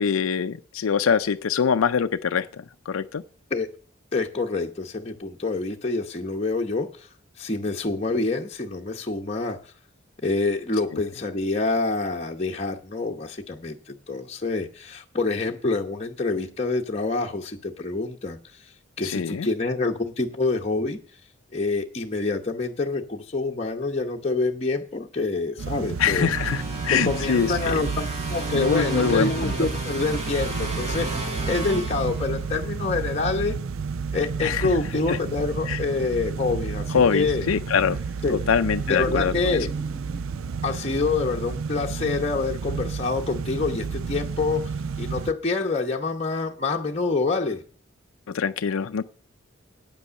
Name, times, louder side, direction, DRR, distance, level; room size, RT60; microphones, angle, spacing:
voice 1, 0.0-3.2 19.0-19.5 26.0-27.8 28.5-29.5 34.4-34.8 35.1-35.2 35.7-35.8 36.9-38.0 38.3-39.6 48.3-49.0, left 6 dB, 90° left, 8 dB, 0.5 m, -24 dB
voice 2, 4.1-7.1 7.4-9.6 10.2-18.4 19.0-21.0 21.5-26.3 26.9-33.6 34.1-37.5 38.2-38.5 38.9-39.7 40.6-47.6, left 3 dB, 30° left, 0 dB, 0.9 m, -27 dB
sound 1, 25.6-45.3, right 5 dB, 80° right, 0.5 m, -31 dB
sound 2, 26.0-32.7, right 1 dB, 35° right, 2.2 m, -33 dB
sound 3, 36.3-37.1 37.5-41.7 42.0-42.2, left 1 dB, 10° right, 1.1 m, -45 dB
9.0 x 8.3 x 6.2 m, 0.41 s
head